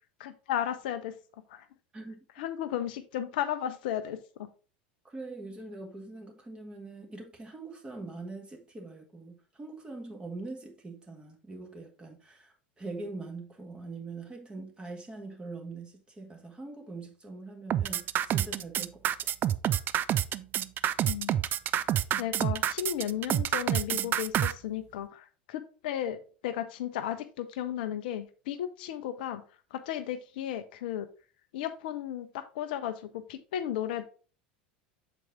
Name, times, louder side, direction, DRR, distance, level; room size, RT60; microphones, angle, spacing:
voice 1, 0.2-1.1 1.5-1.6 2.4-4.5 21.1-21.4 21.8-21.9 22.2-29.4 29.7-31.1 31.5-34.1, left 10 dB, 65° left, 0.6 m, -34 dB
voice 2, 1.9-2.2 5.0-19.3, right 3 dB, 20° right, 1.7 m, -43 dB
sound 1, 17.7-24.5, right 11 dB, 40° right, 0.4 m, -27 dB
6.9 x 4.5 x 3.6 m
hypercardioid pair, 80°, 5 cm